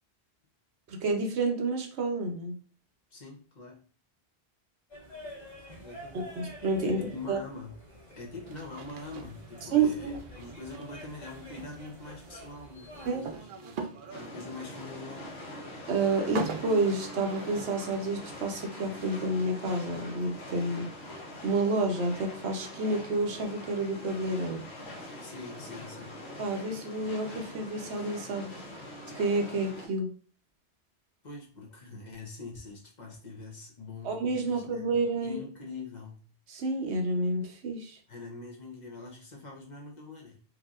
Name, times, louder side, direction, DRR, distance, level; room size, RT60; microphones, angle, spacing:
voice 1, 0.9-2.6 6.1-7.0 7.3-7.4 9.6-10.2 13.1-13.2 15.9-20.9 21.4-24.6 26.4-28.5 29.1-30.1 34.0-35.4 36.5-38.0, right 3 dB, 85° right, 3 dB, 1.1 m, -29 dB
voice 2, 3.1-3.8 5.8-6.3 6.9-7.8 8.1-15.3 25.2-26.2 31.2-34.2 34.5-36.3 38.1-40.4, left 3 dB, 45° left, -1 dB, 1.0 m, -44 dB
sound 1, 4.9-13.4, equal, 25° left, 1.7 m, -48 dB
sound 2, 8.5-21.4, right 5 dB, 60° right, 0.7 m, -44 dB
sound 3, 14.1-29.9, left 1 dB, 80° left, 1.4 m, -43 dB
4.7 x 2.7 x 2.4 m, 0.41 s
omnidirectional pair, 1.1 m